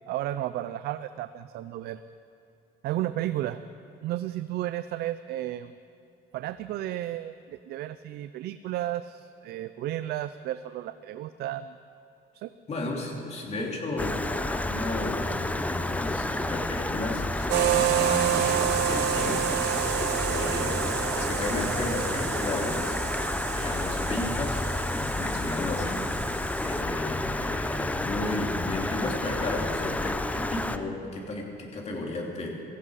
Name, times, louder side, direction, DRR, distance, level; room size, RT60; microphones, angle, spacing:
voice 1, 0.1-2.0 2.8-3.6 4.0-5.7 6.3-11.8 12.3-12.5, right 13 dB, 70° right, 13 dB, 0.4 m, -33 dB
voice 2, 12.7-32.5, left 2 dB, 40° left, 0 dB, 2.9 m, -34 dB
Stream, 14.0-30.8, left 2 dB, 10° left, 0.6 m, -30 dB
sound 1, 17.5-26.8, right 10 dB, 85° right, 1.0 m, -29 dB
17.5 x 15.0 x 4.9 m, 2.6 s
cardioid pair, 110°, 17 cm